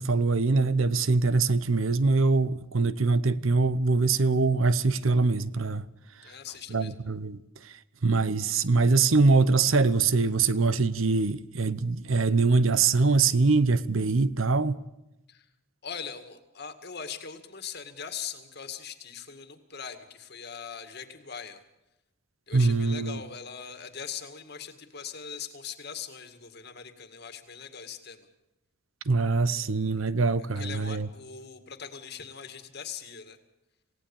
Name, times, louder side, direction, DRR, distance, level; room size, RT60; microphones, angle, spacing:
voice 1, 0.0-5.9 6.7-7.4 7.6-7.7 8.0-14.8 22.5-23.2 29.1-31.1, right 3 dB, 75° right, 0.8 m, -23 dB
voice 2, 6.2-7.0 15.3-15.5 15.8-21.6 22.5-28.3 30.6-33.4, left 7 dB, 50° left, 2.1 m, -41 dB
27.0 x 17.0 x 7.2 m
head